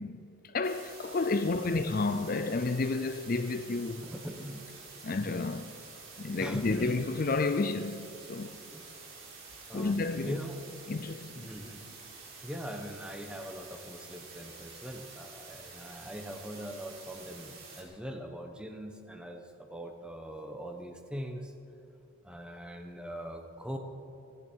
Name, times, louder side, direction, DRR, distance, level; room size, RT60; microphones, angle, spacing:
voice 1, 0.0-4.1 5.0-5.7 6.2-8.6 9.7-10.4 10.9-11.5, left 3 dB, 40° left, 0.5 m, -31 dB
sound 1, 0.6-17.8, right 4 dB, 70° right, 3.7 m, -49 dB
voice 2, 4.0-4.6 6.4-7.0 8.7-8.9 9.7-10.0 10.2-10.6 11.3-11.9 12.4-21.5 22.2-23.8, equal, 5° right, 1.1 m, -41 dB
25.5 x 11.0 x 4.6 m
head